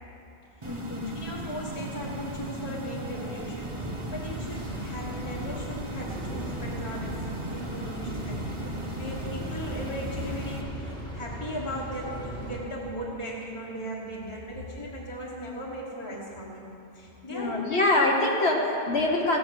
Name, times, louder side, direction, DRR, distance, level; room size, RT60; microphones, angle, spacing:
voice 1, 0.6-1.0 17.3-19.4, left 2 dB, 60° left, -1 dB, 1.2 m, -24 dB
sound 1, 0.6-10.6, right 1 dB, 25° right, 1.0 m, -37 dB
voice 2, 1.1-16.6 16.9-17.8, equal, 20° left, -6 dB, 1.5 m, -37 dB
sound 2, 3.6-12.6, right 1 dB, 5° left, 1.7 m, -38 dB
15.5 x 8.0 x 6.1 m, 2.9 s
omnidirectional pair, 1.3 m